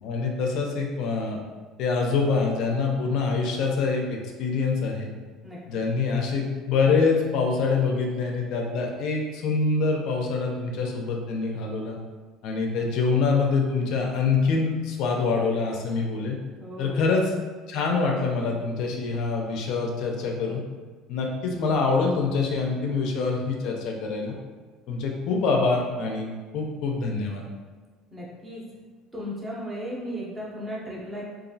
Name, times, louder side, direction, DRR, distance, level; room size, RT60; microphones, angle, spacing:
voice 1, 0.0-1.4 1.8-5.1 5.7-12.0 12.4-16.4 16.8-17.3 17.7-20.6 21.1-24.3 24.9-27.4, left 4 dB, 55° left, 1 dB, 0.4 m, -25 dB
voice 2, 16.6-17.0 28.1-28.6 29.1-31.2, equal, 15° right, -5 dB, 0.5 m, -35 dB
2.9 x 2.4 x 2.6 m, 1.4 s
cardioid pair, 180°, 0 cm